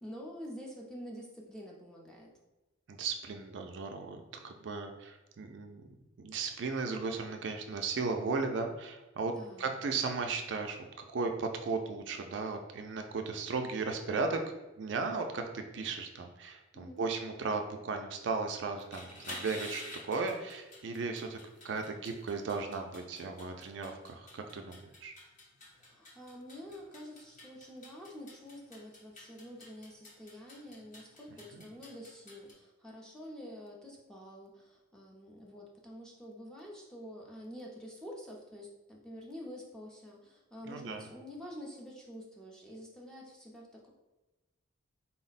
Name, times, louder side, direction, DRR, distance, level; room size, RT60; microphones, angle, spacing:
voice 1, 0.0-2.3 9.3-9.7 16.7-17.0 25.8-43.9, equal, 5° left, -3 dB, 0.5 m, -48 dB
voice 2, 2.9-5.8 6.2-10.9 11.1-14.4 14.8-21.4 21.6-25.1 31.5-31.6 40.7-41.1, right 4 dB, 60° right, 4 dB, 0.4 m, -36 dB
sound 1, 18.8-32.5, left 2 dB, 40° left, 0.9 m, -50 dB
4.1 x 2.1 x 4.0 m, 1.1 s
head